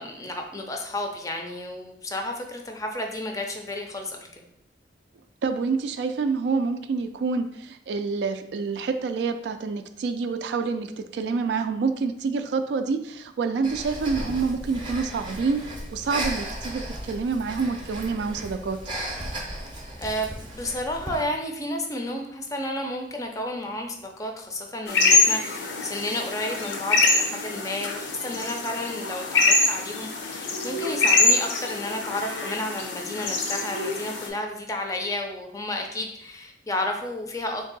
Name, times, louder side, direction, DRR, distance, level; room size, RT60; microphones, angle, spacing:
voice 1, 0.0-4.5 20.0-37.7, left 1 dB, 20° left, 3 dB, 0.4 m, -32 dB
voice 2, 5.4-15.6 15.9-18.8, right 4 dB, 70° right, 8 dB, 0.3 m, -27 dB
Breathing, 13.6-21.3, right 1 dB, 25° right, 0.6 m, -35 dB
sound 1, 24.9-34.3, left 3 dB, 90° left, 0.6 m, -24 dB
3.6 x 2.6 x 3.9 m, 0.75 s
head